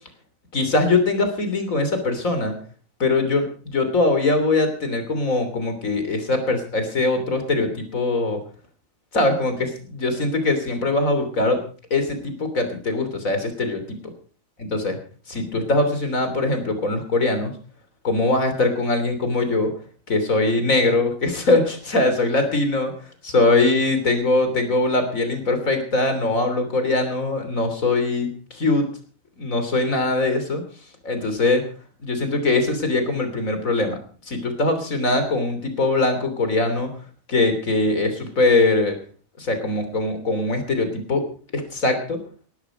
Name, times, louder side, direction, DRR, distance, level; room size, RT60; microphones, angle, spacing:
voice 1, 0.5-2.5 3.0-8.4 9.1-11.6 11.9-14.0 14.6-15.0 15.3-17.5 18.0-19.7 20.1-22.9 23.2-28.9 29.4-30.6 31.0-31.6 32.0-34.0 34.3-36.9 37.3-38.9 39.4-41.2 41.5-42.2, left 2 dB, 75° left, 7 dB, 3.6 m, -22 dB
18.5 x 12.0 x 5.0 m, 0.41 s
omnidirectional pair, 1.4 m